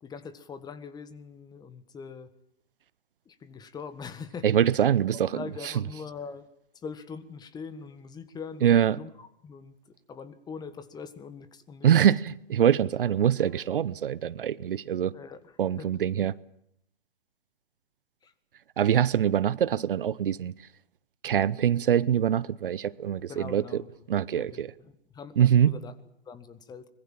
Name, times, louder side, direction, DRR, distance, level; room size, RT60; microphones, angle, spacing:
voice 1, 0.0-2.3 3.2-4.5 4.8-6.5 6.7-12.0 12.8-13.2 15.1-15.9 18.2-18.3 23.3-24.0 24.3-26.0 26.2-26.9, left 5 dB, 15° left, 1.6 m, -43 dB
voice 2, 4.4-5.4 8.6-9.0 11.8-15.1 15.6-16.3 18.8-20.5 21.2-23.8 24.1-24.7 25.4-25.7, right 9 dB, 65° right, 0.9 m, -24 dB
24.5 x 22.0 x 7.5 m
figure-of-eight pair, 125°, 29 cm